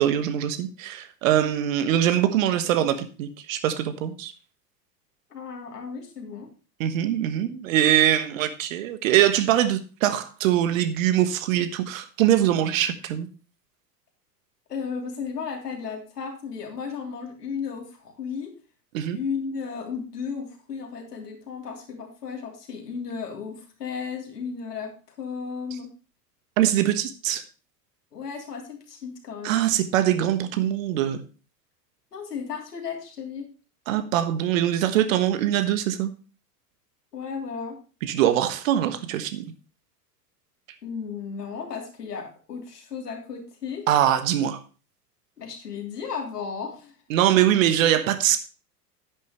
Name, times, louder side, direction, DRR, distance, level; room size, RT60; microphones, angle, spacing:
voice 1, 0.0-4.3 6.8-13.3 18.9-19.2 26.6-27.4 29.4-31.2 33.9-36.1 38.0-39.4 43.9-44.6 47.1-48.4, right 11 dB, 50° right, 11 dB, 1.4 m, -23 dB
voice 2, 5.3-6.5 14.7-18.5 19.1-25.9 28.1-29.6 32.1-33.5 37.1-37.8 40.8-43.9 45.4-46.9, left 6 dB, 70° left, 2 dB, 3.2 m, -34 dB
10.5 x 9.6 x 3.0 m, 0.35 s
figure-of-eight pair, 85°, 49 cm